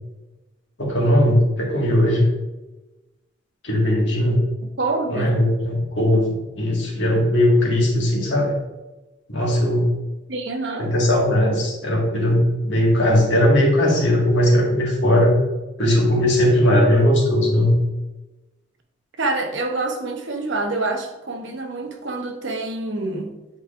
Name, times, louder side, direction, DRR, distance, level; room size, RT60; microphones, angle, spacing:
voice 1, 0.8-2.2 3.6-4.4 5.1-8.5 9.3-9.9 10.8-15.3 15.8-17.8, left 1 dB, 65° left, -2 dB, 1.8 m, -18 dB
voice 2, 4.8-5.4 10.3-10.9 19.2-23.4, right 2 dB, 70° right, 4 dB, 0.8 m, -26 dB
8.4 x 4.8 x 2.5 m, 1.1 s
head